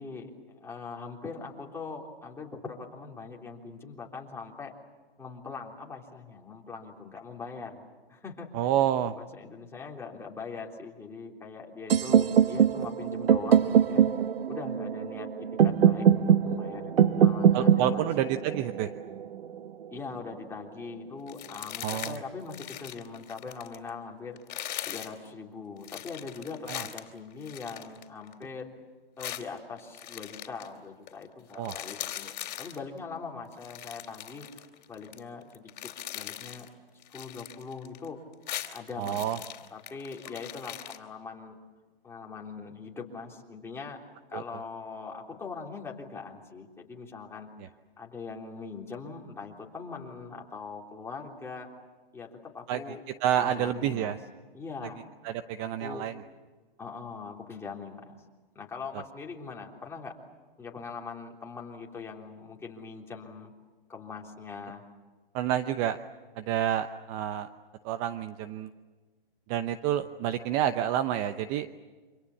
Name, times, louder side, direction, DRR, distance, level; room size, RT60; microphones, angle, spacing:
voice 1, 0.0-4.7 5.2-7.8 8.1-8.9 9.2-14.1 14.5-18.1 19.9-24.4 24.9-28.7 29.2-34.5 34.9-36.8 37.1-38.2 38.7-39.3 39.7-41.6 42.0-44.0 44.3-47.5 48.0-51.7 52.1-53.0 53.4-54.1 54.5-55.0 55.6-56.0 56.8-58.2 58.6-60.2 60.6-63.5 63.9-64.8, left 4 dB, 10° left, -1 dB, 3.6 m, -41 dB
voice 2, 8.5-9.1 17.5-18.9 21.8-22.2 26.7-26.8 31.5-31.7 39.0-39.4 44.3-44.4 52.7-52.8 53.2-54.2 55.2-56.1 65.3-66.0 66.4-67.5 67.8-68.7 69.5-71.7, right 11 dB, 25° right, 10 dB, 0.8 m, -29 dB
sound 1, 11.9-19.8, right 9 dB, 75° right, 1.1 m, -23 dB
sound 2, 21.3-22.2 22.5-23.9 24.4-25.2 25.8-28.5 29.2-30.7 31.1-31.2 31.5-32.8 33.5-35.2 35.5-36.7 37.0-38.1 38.3-41.0, left 12 dB, 50° left, 3.7 m, -40 dB
28.0 x 26.0 x 7.3 m, 1.3 s
hypercardioid pair, 140°, 29 cm